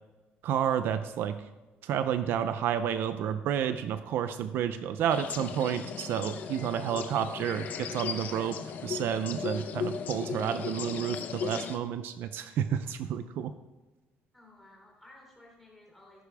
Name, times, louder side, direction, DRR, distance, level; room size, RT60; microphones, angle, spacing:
voice 1, 0.4-1.5 1.8-13.5, right 9 dB, 65° right, 10 dB, 0.6 m, -30 dB
sound 1, 5.1-11.8, left 7 dB, 45° left, 0.8 m, -37 dB
voice 2, 14.3-16.2, left 2 dB, 5° left, -2 dB, 3.4 m, -55 dB
14.5 x 11.5 x 3.5 m, 1.1 s
cardioid pair, 180°, 4 cm